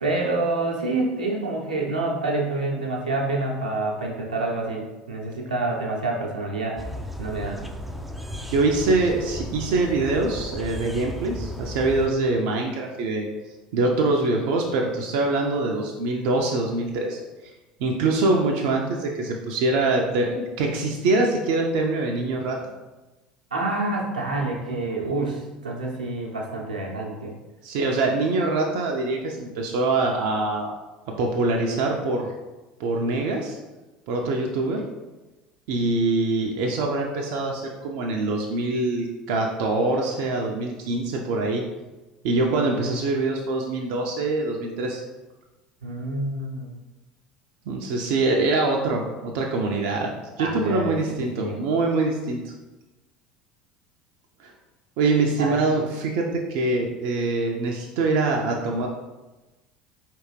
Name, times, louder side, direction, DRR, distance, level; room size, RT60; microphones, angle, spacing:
voice 1, 0.0-6.8 7.2-7.6 23.5-27.3 45.8-46.8 50.4-51.6 55.4-55.7, right 2 dB, 85° right, -2 dB, 0.8 m, -27 dB
sound 1, 6.8-12.1, left 1 dB, ahead, 0.5 m, -35 dB
voice 2, 8.5-13.3 13.7-17.5 17.8-22.6 27.6-30.7 31.2-32.3 32.8-33.6 34.1-34.8 35.7-41.6 42.2-45.0 47.7-52.5 54.4-54.5 55.0-58.9, right 2 dB, 60° right, 0 dB, 0.6 m, -24 dB
4.7 x 3.3 x 3.2 m, 1.1 s
figure-of-eight pair, 70°, 4 cm